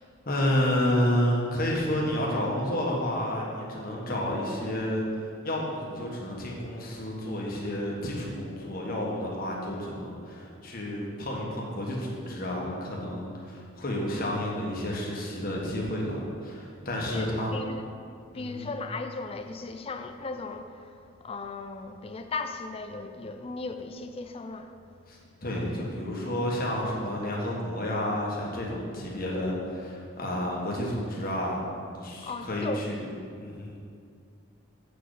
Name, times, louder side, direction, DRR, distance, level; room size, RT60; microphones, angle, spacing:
voice 1, 0.2-5.0 5.4-17.7 18.3-18.7 25.1-33.0 33.4-33.8, left 1 dB, 45° left, -3 dB, 1.5 m, -30 dB
voice 2, 17.0-17.8 18.3-24.7 32.2-32.9, left 3 dB, 25° left, 7 dB, 0.4 m, -37 dB
7.6 x 6.6 x 4.9 m, 2.3 s
head